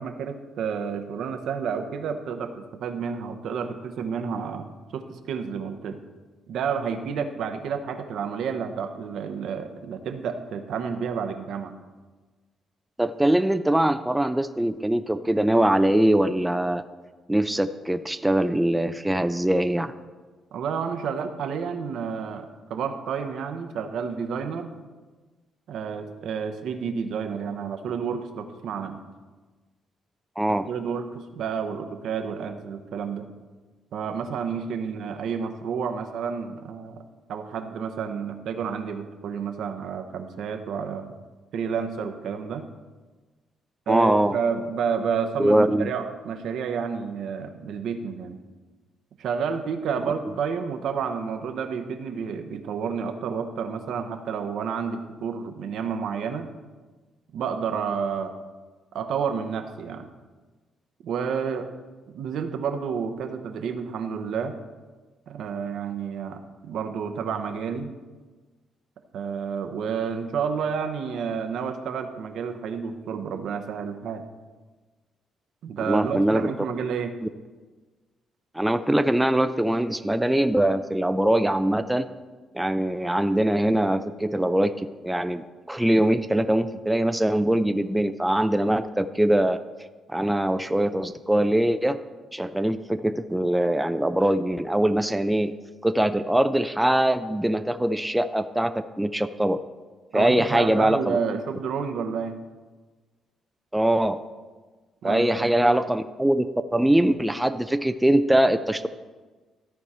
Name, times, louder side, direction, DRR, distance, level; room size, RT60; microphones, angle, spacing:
voice 1, 0.0-4.7 4.9-6.0 6.5-11.7 20.5-24.7 25.7-29.0 30.5-33.3 33.9-37.0 37.3-41.1 41.5-42.6 43.9-48.4 49.2-56.5 57.3-58.3 58.9-60.1 61.0-61.7 62.1-64.6 65.3-67.9 69.1-74.2 75.6-77.2 100.1-102.4 105.0-105.8, right 6 dB, 75° right, 7 dB, 0.8 m, -30 dB
voice 2, 13.0-16.8 17.3-19.9 30.4-30.7 43.9-44.4 45.4-45.9 75.8-76.5 78.5-82.1 82.5-89.6 90.1-92.0 92.3-95.5 95.8-99.6 100.1-101.2 103.7-104.2 105.0-108.9, right 1 dB, 5° right, 10 dB, 0.4 m, -22 dB
13.5 x 4.7 x 4.3 m, 1.3 s
cardioid pair, 90°, 0 cm